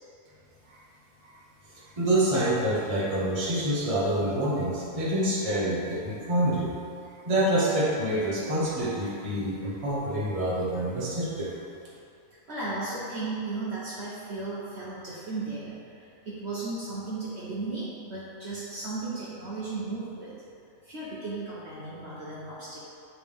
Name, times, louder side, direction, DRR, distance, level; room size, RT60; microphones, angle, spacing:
voice 1, 1.7-6.7 7.2-11.5, right 1 dB, 25° right, -7 dB, 1.2 m, -27 dB
voice 2, 12.5-20.3 20.8-22.8, right 3 dB, 50° right, -9 dB, 1.2 m, -35 dB
8.7 x 3.4 x 3.5 m, 2.6 s
omnidirectional pair, 1.5 m